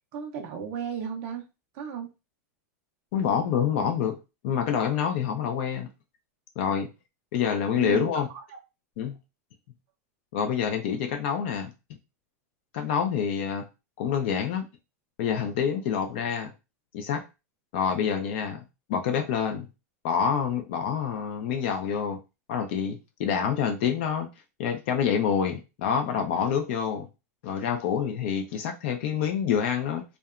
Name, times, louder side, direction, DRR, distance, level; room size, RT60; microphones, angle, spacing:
voice 1, 0.1-1.5 1.7-2.1 7.7-8.6, right 8 dB, 35° right, 0.4 m, -34 dB
voice 2, 3.1-4.2 4.4-5.9 6.6-6.9 7.3-8.3 9.0-9.2 10.3-11.7 12.7-13.6 14.0-14.7 15.2-16.5 16.9-17.2 17.7-18.6 18.9-19.7 20.0-22.2 22.5-24.3 24.6-27.1 27.4-30.0, left 7 dB, 45° left, 0.4 m, -27 dB
2.7 x 2.1 x 2.3 m
supercardioid pair, 175°, 9 cm